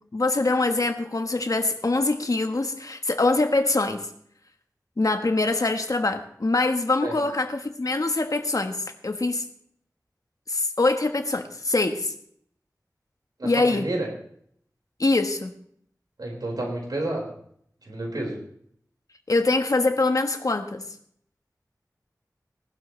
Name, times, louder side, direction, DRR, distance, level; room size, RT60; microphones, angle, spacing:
voice 1, 0.1-4.1 5.0-9.4 10.5-12.1 13.4-13.9 15.0-15.5 19.3-20.8, left 2 dB, 60° left, 6 dB, 1.3 m, -24 dB
voice 2, 13.4-14.1 16.2-17.3 17.8-18.3, right 1 dB, 90° right, -2 dB, 4.9 m, -30 dB
19.0 x 12.0 x 3.2 m, 0.66 s
wide cardioid pair, 60°, 7 cm